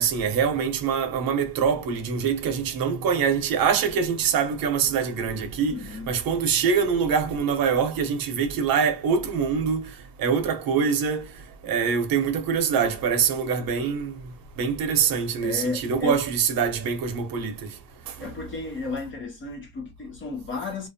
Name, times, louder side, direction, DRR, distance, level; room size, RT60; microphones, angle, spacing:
voice 1, 0.0-5.8 6.1-9.8 10.2-11.3 11.6-14.2 14.6-17.5, right 6 dB, 60° right, 0.7 m, -24 dB
voice 2, 5.7-6.1 15.4-16.2 18.2-20.9, left 3 dB, 30° left, 0.5 m, -33 dB
2.5 x 2.0 x 2.6 m
cardioid pair, 175°, 41 cm